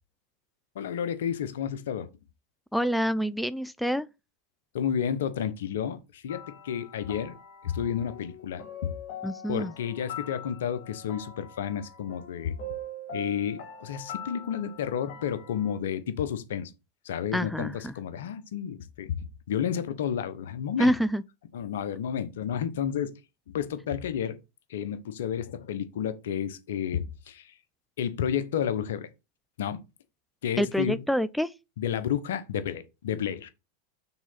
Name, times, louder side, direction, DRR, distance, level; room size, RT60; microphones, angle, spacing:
voice 1, 0.7-2.1 4.7-7.4 7.6-8.9 9.5-12.6 13.1-16.7 17.0-19.2 19.5-20.9 21.5-23.1 23.5-24.4 24.7-27.5 28.0-29.1 29.6-29.8 30.4-31.0 31.8-33.5, left 9 dB, 75° left, 1.0 m, -31 dB
voice 2, 2.7-4.1 9.2-9.7 17.3-17.9 20.8-21.2 30.6-31.5, equal, ahead, 0.4 m, -27 dB
sound 1, 6.3-15.8, left 2 dB, 55° left, 1.8 m, -43 dB
6.1 x 3.9 x 5.7 m
hypercardioid pair, 95°, 0 cm